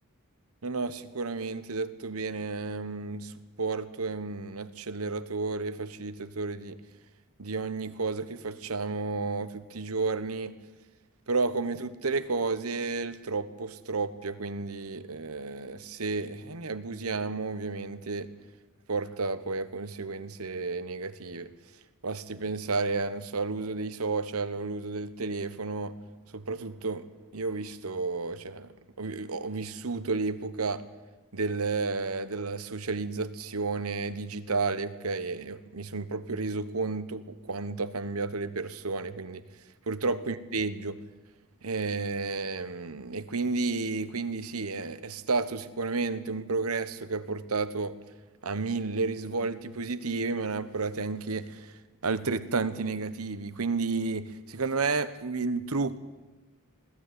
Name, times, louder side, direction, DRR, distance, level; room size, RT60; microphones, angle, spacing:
voice 1, 0.6-6.8 7.4-10.5 11.3-18.3 18.9-21.5 22.0-25.9 26.3-27.1 27.3-30.8 31.3-39.4 39.9-41.0 41.6-48.0 48.4-51.7 52.0-56.0, right 3 dB, 85° right, 13 dB, 1.2 m, -32 dB
20.5 x 15.5 x 9.6 m, 1.2 s
head